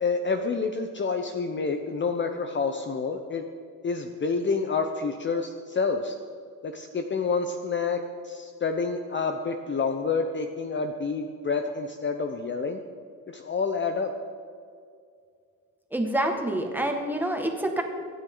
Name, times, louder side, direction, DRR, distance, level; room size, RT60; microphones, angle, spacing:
voice 1, 0.0-3.4 3.8-6.1 6.6-12.8 13.3-14.1, left 4 dB, 30° left, 6 dB, 0.8 m, -28 dB
voice 2, 15.9-17.8, right 1 dB, 5° right, 2 dB, 2.0 m, -27 dB
24.5 x 9.8 x 3.9 m, 2.2 s
cardioid pair, 120°, 36 cm